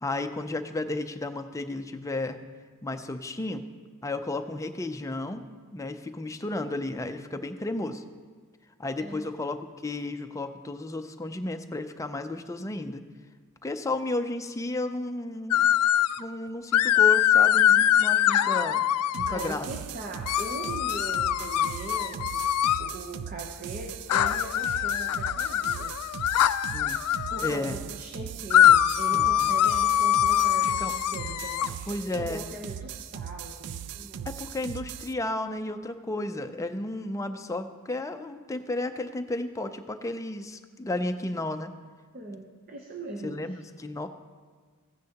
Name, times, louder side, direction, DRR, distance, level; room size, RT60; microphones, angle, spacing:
voice 1, 0.0-2.4 2.8-3.7 4.0-5.4 5.7-8.0 8.8-13.0 13.6-15.7 16.2-18.8 19.1-19.7 26.7-27.0 27.4-27.8 29.1-29.5 30.6-30.9 31.9-32.4 34.3-41.7 43.2-44.1, left 2 dB, 15° left, 7 dB, 0.4 m, -33 dB
voice 2, 9.0-9.3 19.3-22.5 22.8-26.0 27.3-34.4 42.1-43.6, right 2 dB, 40° right, 0 dB, 0.8 m, -40 dB
sound 1, 15.5-16.2 16.7-19.5 20.3-22.9 24.1-27.5 28.5-31.7, left 11 dB, 80° left, 0.3 m, -23 dB
sound 2, 19.1-35.1, right 9 dB, 85° right, 0.3 m, -39 dB
15.0 x 9.9 x 2.9 m, 1.5 s
head